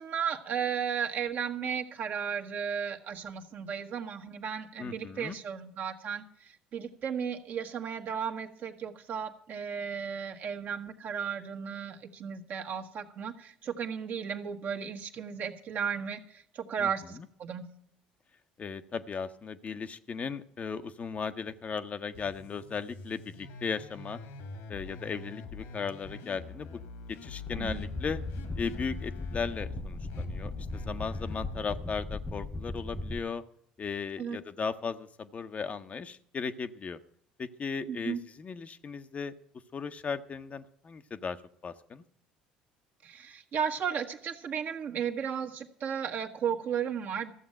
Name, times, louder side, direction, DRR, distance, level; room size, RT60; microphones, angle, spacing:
voice 1, 0.0-17.7 27.6-27.8 34.2-34.4 37.9-38.2 43.0-47.3, right 7 dB, 50° right, 4 dB, 1.5 m, -34 dB
voice 2, 4.8-5.4 16.8-17.3 18.6-24.2 24.7-26.7 27.1-28.2 28.6-33.4 33.8-37.0 37.4-39.4 39.7-41.4 41.6-42.0, left 5 dB, 35° left, 9 dB, 0.9 m, -36 dB
sound 1, 22.1-31.6, left 4 dB, 70° left, 1.9 m, -44 dB
sound 2, 27.5-33.2, left 2 dB, 10° left, 1.0 m, -38 dB
14.0 x 7.3 x 8.9 m, 0.65 s
hypercardioid pair, 65°, 4 cm